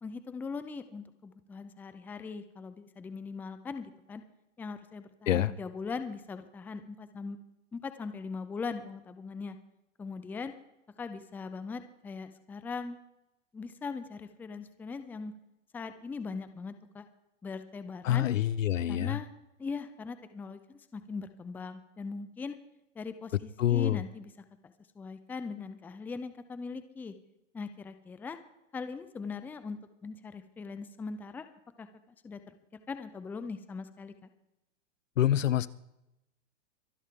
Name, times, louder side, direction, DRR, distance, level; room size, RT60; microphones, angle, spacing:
voice 1, 0.0-4.2 4.6-7.4 7.7-9.6 10.0-10.5 11.0-13.0 13.5-15.3 15.7-17.1 17.4-18.3 18.9-19.3 19.6-22.6 23.0-24.3 24.6-27.1 27.5-28.4 28.7-31.5 31.8-31.9 32.2-32.4 32.9-34.3, left 4 dB, 5° left, 11 dB, 0.5 m, -40 dB
voice 2, 18.0-19.2 23.6-24.0 35.2-35.7, left 11 dB, 85° left, 19 dB, 0.9 m, -26 dB
24.5 x 11.5 x 3.7 m, 0.87 s
hypercardioid pair, 140°, 37 cm